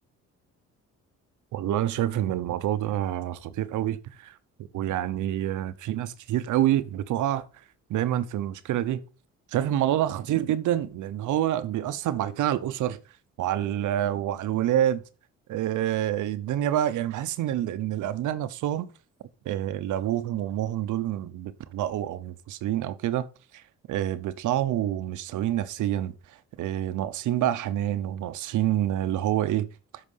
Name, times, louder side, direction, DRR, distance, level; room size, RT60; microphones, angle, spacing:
voice 1, 1.5-4.3 4.7-7.4 7.9-9.0 9.5-13.0 13.4-15.0 15.5-18.9 19.4-23.3 23.5-23.6 23.9-26.1 26.6-29.7, right 12 dB, 80° right, 0.8 m, -27 dB
8.3 x 5.9 x 5.5 m
cardioid pair, 90°, 30 cm